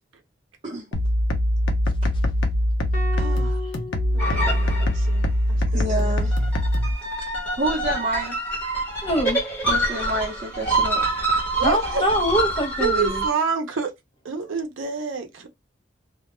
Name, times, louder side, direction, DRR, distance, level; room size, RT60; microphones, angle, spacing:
sound 1, 0.9-6.9, equal, 75° left, 0.6 m, -22 dB
sound 2, 2.9-5.3, left 3 dB, 45° left, 0.9 m, -36 dB
voice 1, 3.2-3.6 4.1-6.2 11.6-12.0 12.8-13.9 14.2-15.5, right 6 dB, 90° right, 0.6 m, -29 dB
sound 3, 4.2-5.2 6.2-13.3, right 1 dB, 10° left, 0.9 m, -26 dB
voice 2, 5.7-6.5 7.6-8.4 9.7-11.1, right 1 dB, 30° right, 0.7 m, -28 dB
voice 3, 9.0-9.4 11.6-13.2, right 1 dB, 25° left, 0.6 m, -23 dB
2.2 x 2.1 x 2.9 m
head